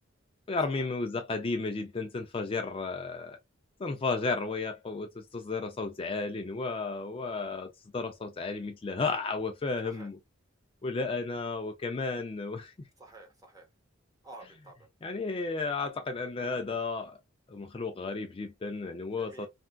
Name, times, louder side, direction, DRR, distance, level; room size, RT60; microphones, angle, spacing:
voice 1, 0.5-3.4 3.8-10.2 10.8-12.9 15.0-17.2 17.5-19.5, left 3 dB, 25° left, 0.4 m, -33 dB
voice 2, 13.0-13.7 14.2-14.9 19.2-19.5, right 2 dB, 15° right, 1.0 m, -50 dB
3.4 x 2.3 x 2.2 m
head